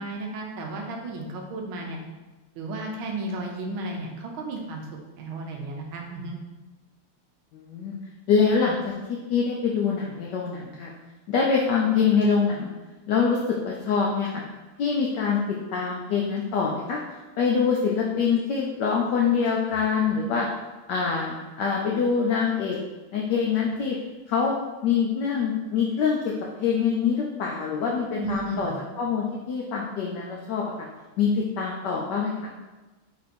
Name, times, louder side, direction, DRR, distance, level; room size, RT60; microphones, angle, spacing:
voice 1, 0.0-2.0 2.6-4.9 5.2-6.4 28.2-28.8, right 2 dB, 75° right, 1 dB, 1.4 m, -33 dB
voice 2, 7.5-7.9 8.3-10.9 11.3-12.7 13.1-14.4 14.8-20.5 20.9-22.8 23.1-24.0 24.3-24.5 24.8-26.2 26.6-28.7 29.0-30.7 31.2-32.5, left 6 dB, 85° left, -2 dB, 0.9 m, -25 dB
4.6 x 2.7 x 4.2 m, 1.2 s
omnidirectional pair, 2.4 m